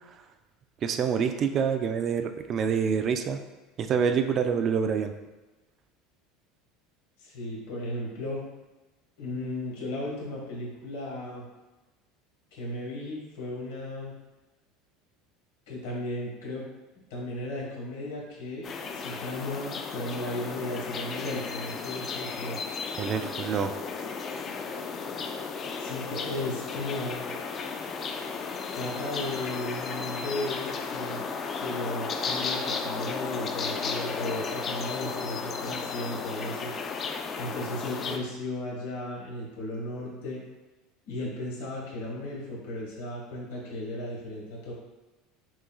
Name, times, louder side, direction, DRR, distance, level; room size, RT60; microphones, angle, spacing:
voice 1, 0.8-3.4 3.8-5.1 23.0-23.7, right 7 dB, 45° right, 8 dB, 0.3 m, -26 dB
voice 2, 7.2-8.4 9.2-11.4 12.5-14.1 15.7-16.6 17.1-22.6 25.8-27.3 28.7-31.3 31.6-36.7 37.4-40.4 41.1-44.7, left 1 dB, 80° left, -4 dB, 1.3 m, -35 dB
sound 1, 18.6-38.2, left 5 dB, 40° left, 0.4 m, -34 dB
6.1 x 2.3 x 2.3 m, 1.1 s
supercardioid pair, 105°, 0 cm